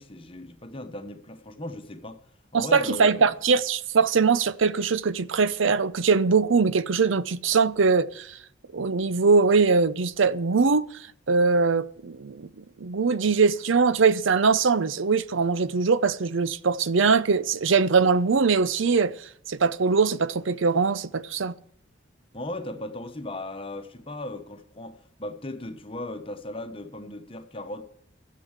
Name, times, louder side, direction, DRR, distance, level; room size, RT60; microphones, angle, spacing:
voice 1, 0.0-2.2 2.5-3.3 22.3-27.8, left 1 dB, 25° left, 1.1 m, -37 dB
voice 2, 2.5-8.4 8.7-10.9 11.3-21.6, right 4 dB, 70° right, 0.6 m, -22 dB
12.0 x 7.7 x 8.1 m
head